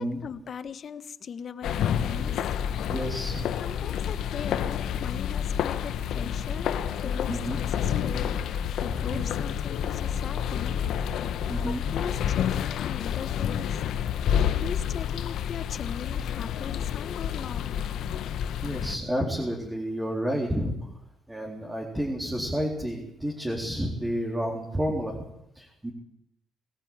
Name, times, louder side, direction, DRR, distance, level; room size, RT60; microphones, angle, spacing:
voice 1, 0.0-2.4 3.6-10.8 11.6-13.8 14.3-17.7, left 7 dB, 55° left, 12 dB, 1.4 m, -39 dB
sound 1, 1.6-19.0, left 9 dB, 80° left, 1.4 m, -29 dB
voice 2, 2.9-3.5 7.3-7.6 9.1-9.2 11.5-11.8 18.6-20.7 21.3-25.2 25.5-25.9, equal, 15° right, -1 dB, 4.0 m, -30 dB
21.5 x 15.0 x 9.0 m, 0.83 s
cardioid pair, 90°, 0 cm